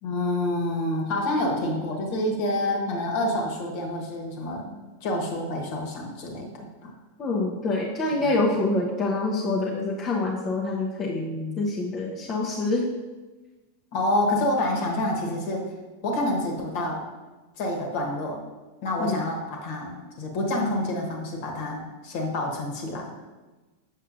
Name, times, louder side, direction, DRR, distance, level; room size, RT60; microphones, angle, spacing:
voice 1, 0.0-4.7 5.0-6.5 6.8-6.9 8.2-8.4 11.1-11.6 13.9-15.7 16.0-17.0 17.6-18.4 18.8-23.1, left 1 dB, 45° left, 1 dB, 1.3 m, -28 dB
voice 2, 7.2-11.2 11.6-12.9 19.0-19.2, left 2 dB, 25° left, -3 dB, 0.8 m, -26 dB
7.6 x 6.3 x 2.7 m, 1.2 s
figure-of-eight pair, 90°, 0 cm